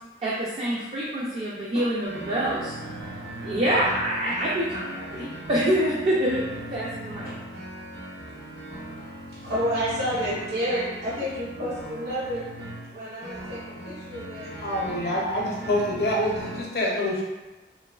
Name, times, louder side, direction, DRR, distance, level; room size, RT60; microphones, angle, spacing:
voice 1, 0.2-2.7 3.0-3.1 3.4-6.4 6.7-7.4, right 1 dB, 35° right, -7 dB, 0.4 m, -26 dB
sound 1, 2.0-16.6, right 1 dB, 75° right, 0.7 m, -39 dB
voice 2, 9.3-12.5 12.9-14.5, equal, 60° right, -10 dB, 1.1 m, -30 dB
voice 3, 14.6-17.2, left 1 dB, 60° left, -4 dB, 0.6 m, -26 dB
2.9 x 2.2 x 2.3 m, 1.1 s
head